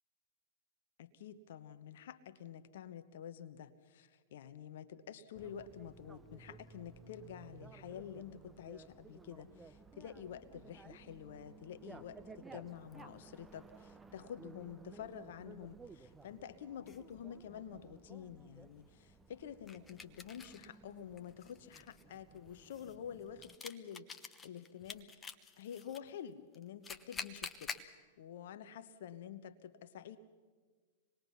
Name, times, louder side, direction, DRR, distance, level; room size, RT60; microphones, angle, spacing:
voice 1, 1.0-27.8 28.2-30.2, left 9 dB, 60° left, 12 dB, 1.0 m, -49 dB
Bicycle, 5.3-23.5, right 4 dB, 10° right, 0.8 m, -57 dB
sound 1, 12.9-13.6 16.1-16.2 16.9-17.0 19.7-20.7 21.2-26.0 26.5-27.9, left 5 dB, 15° left, 1.0 m, -48 dB
26.0 x 20.5 x 5.8 m, 1.5 s
figure-of-eight pair, 100°, 0 cm